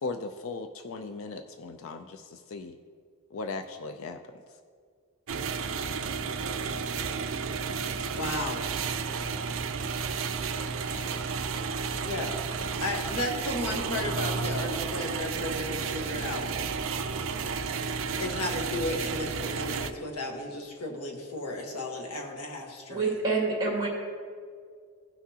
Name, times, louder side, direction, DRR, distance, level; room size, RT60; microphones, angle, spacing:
voice 1, 0.0-2.8 3.3-4.2, left 3 dB, 60° left, 8 dB, 0.4 m, -37 dB
sound 1, 5.3-19.9, right 5 dB, 60° right, 0.4 m, -32 dB
voice 2, 8.1-8.6 11.1-11.3 12.0-12.3 12.8-16.4 18.2-23.1, left 2 dB, 90° left, 2 dB, 1.3 m, -34 dB
voice 3, 22.9-23.9, right 3 dB, 20° right, -3 dB, 2.2 m, -27 dB
16.5 x 6.0 x 2.8 m, 2.1 s
head